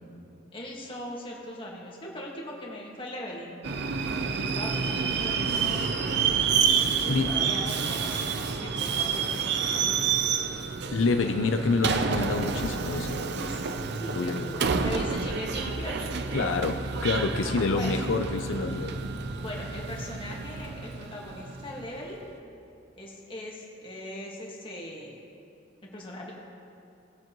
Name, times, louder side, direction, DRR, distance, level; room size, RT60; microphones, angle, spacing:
voice 1, 0.5-3.6 4.3-6.5 7.0-10.2 13.4-16.1 17.7-18.0 19.4-22.2 23.0-25.2 25.8-26.3, left 1 dB, 25° left, -3 dB, 1.7 m, -40 dB
Subway metro underground, 3.6-22.1, right 6 dB, 60° right, 0.6 m, -29 dB
voice 2, 7.1-7.4 10.9-13.3 14.1-14.6 16.3-19.1, left 3 dB, 85° left, 6 dB, 0.5 m, -27 dB
19.0 x 7.3 x 3.0 m, 2.6 s
head